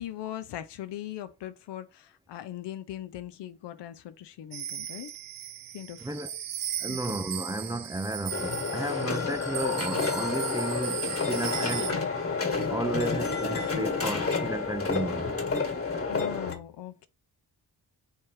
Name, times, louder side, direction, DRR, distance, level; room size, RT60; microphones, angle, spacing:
voice 1, 0.0-5.1 5.7-6.1 6.9-7.2 9.0-9.1 11.8-12.2 12.7-12.8 16.1-17.1, left 12 dB, 85° left, 0.6 m, -40 dB
sound 1, 4.5-11.9, right 11 dB, 55° right, 0.6 m, -37 dB
voice 2, 6.0-6.3 6.8-11.9 12.7-15.4, right 2 dB, 10° right, 0.3 m, -33 dB
sound 2, 8.3-16.5, left 4 dB, 35° left, 1.4 m, -30 dB
3.4 x 3.1 x 4.6 m
supercardioid pair, 50°, 41 cm